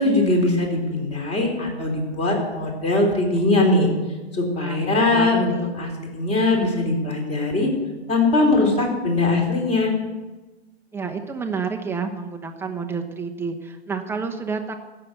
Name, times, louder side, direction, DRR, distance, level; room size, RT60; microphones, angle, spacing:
voice 1, 0.0-3.9 4.3-7.7 8.1-9.9, left 2 dB, 20° left, 1 dB, 3.6 m, -21 dB
voice 2, 4.5-5.7 10.9-14.7, right 5 dB, 5° right, 3 dB, 1.1 m, -30 dB
15.0 x 6.9 x 7.9 m, 1.2 s
hypercardioid pair, 125°, 33 cm